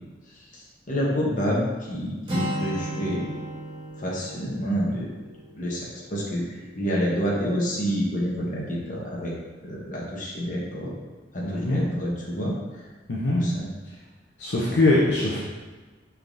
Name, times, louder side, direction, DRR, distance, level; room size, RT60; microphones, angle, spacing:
voice 1, 0.5-3.3 4.0-5.1 5.6-6.4 6.7-9.3 9.6-10.9 11.3-12.6 13.4-13.7, equal, 45° left, -4 dB, 1.1 m, -28 dB
Acoustic guitar, 2.3-6.2, equal, 25° right, 1.2 m, -34 dB
voice 2, 11.4-11.9 13.1-13.5 14.4-15.4, left 2 dB, 70° left, -5 dB, 0.7 m, -22 dB
5.7 x 3.5 x 2.6 m, 1.3 s
head